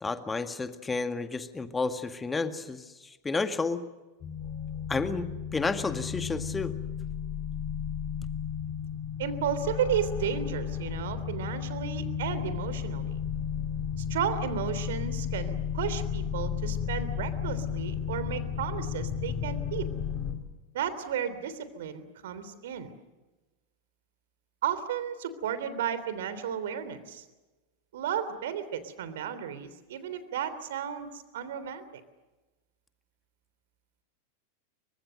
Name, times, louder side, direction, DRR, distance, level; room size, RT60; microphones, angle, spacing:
voice 1, 0.0-3.8 4.9-6.7, left 4 dB, 15° left, 8 dB, 2.0 m, -31 dB
sound 1, 4.2-20.3, left 8 dB, 30° left, 4.5 m, -33 dB
voice 2, 9.2-13.2 14.1-19.9 20.7-22.9 24.6-27.2 27.9-31.1 31.3-31.8, right 8 dB, 55° right, 13 dB, 3.4 m, -33 dB
30.0 x 25.0 x 6.6 m, 1.1 s
figure-of-eight pair, 90°, 0 cm